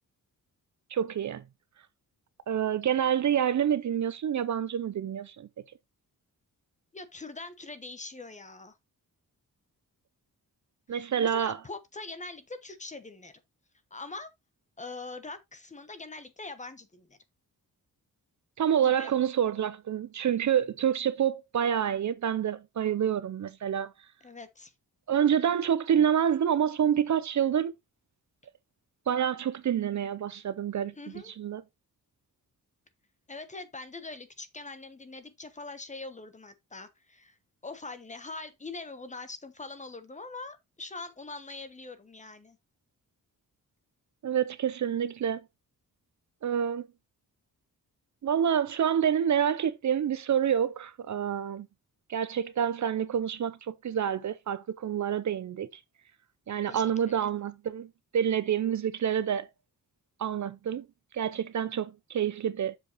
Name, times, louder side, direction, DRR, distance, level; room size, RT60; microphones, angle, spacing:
voice 1, 0.9-1.4 2.5-5.5 10.9-11.6 18.6-23.9 25.1-27.7 29.1-30.9 31.3-31.6 44.2-45.4 46.4-46.9 48.2-51.7 52.1-55.7 56.5-57.9 58.1-59.5 60.2-60.8 61.1-62.8, right 9 dB, 50° right, 0.6 m, -27 dB
voice 2, 6.9-8.7 10.9-13.3 13.9-14.3 14.8-17.2 18.8-19.1 24.2-24.7 30.9-31.3 33.3-37.4 37.6-42.6 56.7-56.9, left 3 dB, 20° left, 1.0 m, -43 dB
7.6 x 6.9 x 3.0 m
wide cardioid pair, 165°, 36 cm